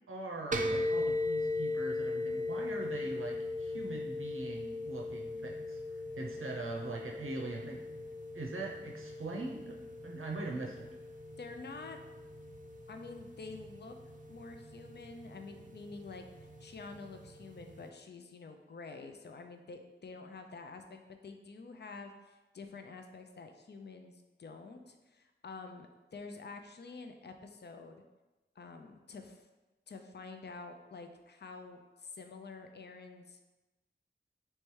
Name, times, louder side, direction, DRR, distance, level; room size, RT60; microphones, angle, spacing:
voice 1, 0.1-5.8 6.1-7.9 8.3-9.8 10.0-10.9, right 2 dB, 90° right, -1 dB, 0.6 m, -42 dB
sound 1, 0.5-17.9, left 2 dB, 40° right, 0.4 m, -39 dB
voice 2, 11.4-12.0 12.9-14.0 14.3-28.0 28.6-29.5 29.9-33.4, left 4 dB, 55° left, 5 dB, 0.4 m, -48 dB
3.2 x 3.2 x 4.6 m, 1.1 s
wide cardioid pair, 45°, 21 cm